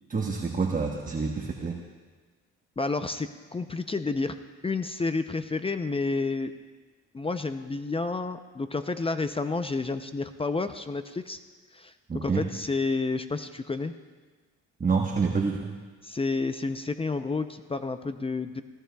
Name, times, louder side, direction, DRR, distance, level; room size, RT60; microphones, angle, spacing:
voice 1, 0.1-1.8 12.1-12.5 14.8-15.8, right 5 dB, 30° right, 1 dB, 1.1 m, -27 dB
voice 2, 2.8-4.4 4.6-6.5 7.1-11.4 11.7-13.9 16.0-18.6, left 3 dB, 20° left, 9 dB, 0.5 m, -30 dB
18.5 x 17.5 x 2.3 m, 1.4 s
cardioid pair, 90°, 30 cm